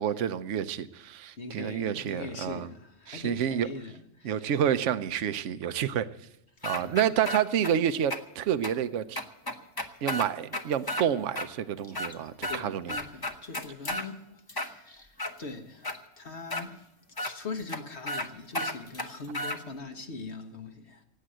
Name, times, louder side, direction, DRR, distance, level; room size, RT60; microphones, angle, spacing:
voice 1, 0.0-2.7 3.1-3.7 4.2-6.1 6.6-9.2 10.0-13.0, right 9 dB, 70° right, 1.0 m, -29 dB
voice 2, 1.4-4.6 6.6-6.9 12.5-16.9 17.2-21.0, left 3 dB, 55° left, 1.7 m, -42 dB
sound 1, 6.6-7.7 8.1-8.2 8.6-8.7 9.2-11.1 11.4-11.5 11.8-12.6 12.9-14.1 14.5-15.3 15.8-16.0 16.5-16.6 17.2-17.3 17.7-17.8 18.1-18.3 18.5-19.6, left 1 dB, 20° left, 0.9 m, -33 dB
18.0 x 8.7 x 7.7 m
omnidirectional pair, 1.4 m